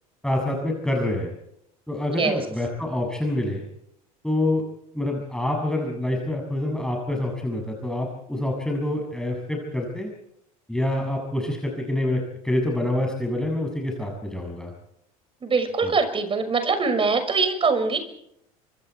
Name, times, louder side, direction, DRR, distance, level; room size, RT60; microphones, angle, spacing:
voice 1, 0.2-1.3 1.9-3.7 4.2-4.6 4.9-10.1 10.7-14.7 15.8-15.9, left 1 dB, 5° left, 0 dB, 6.9 m, -26 dB
voice 2, 15.4-18.0, right 4 dB, 30° right, 8 dB, 6.1 m, -23 dB
25.5 x 25.5 x 4.6 m, 0.76 s
hypercardioid pair, 80°, 19 cm